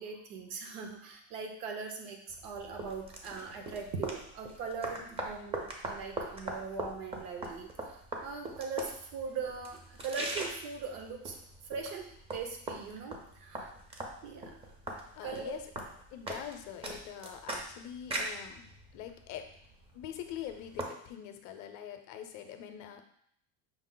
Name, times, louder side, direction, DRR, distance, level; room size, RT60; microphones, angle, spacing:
voice 1, 0.0-11.4 11.7-13.7 14.2-14.6 15.2-15.6, right 5 dB, 80° right, 3 dB, 0.9 m, -40 dB
sound 1, 2.3-20.8, right 2 dB, 15° right, 0.4 m, -42 dB
voice 2, 15.1-15.6 16.1-18.7 18.9-19.5 19.9-23.0, left 10 dB, 50° left, 7 dB, 0.6 m, -44 dB
5.8 x 2.0 x 3.8 m, 0.69 s
cardioid pair, 150°, 38 cm